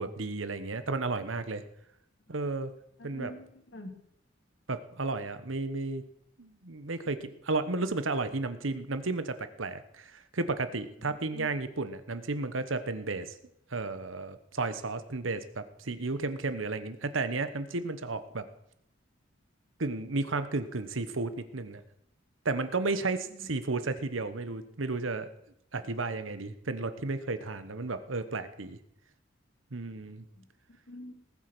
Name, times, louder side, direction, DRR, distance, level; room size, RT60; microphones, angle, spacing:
voice 1, 0.0-1.6 2.3-2.7 3.0-3.3 4.7-6.0 6.4-13.3 13.7-18.5 19.8-21.8 22.4-25.3 25.7-28.8 29.7-30.2, right 3 dB, 85° right, 11 dB, 1.2 m, -33 dB
voice 2, 3.0-3.9 11.0-11.5 23.3-23.5 30.4-30.5 30.9-31.1, left 1 dB, 65° left, 5 dB, 2.3 m, -46 dB
19.0 x 8.2 x 6.1 m, 0.75 s
head